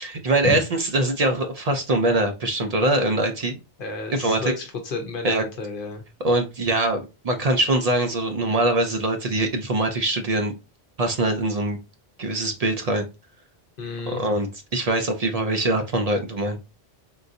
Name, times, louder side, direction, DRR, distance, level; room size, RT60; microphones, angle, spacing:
voice 1, 0.0-3.6 4.1-4.4 5.2-5.4 6.2-10.5 11.0-11.8 12.2-13.0 14.1-16.6, right 2 dB, 50° right, 6 dB, 0.5 m, -23 dB
voice 2, 3.8-6.0 13.8-14.2, left 4 dB, 60° left, 4 dB, 0.8 m, -31 dB
3.7 x 2.5 x 2.6 m, 0.27 s
omnidirectional pair, 1.1 m